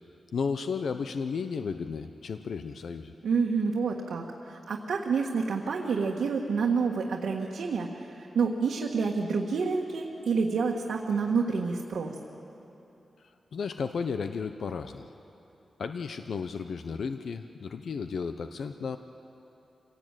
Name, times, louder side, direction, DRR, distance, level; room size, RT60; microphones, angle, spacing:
voice 1, 0.3-3.1 13.5-15.1 15.8-19.0, left 5 dB, 70° left, 8 dB, 0.7 m, -33 dB
voice 2, 3.2-12.2, right 5 dB, 90° right, -1 dB, 1.6 m, -28 dB
26.0 x 17.0 x 9.0 m, 2.9 s
wide cardioid pair, 165°, 0 cm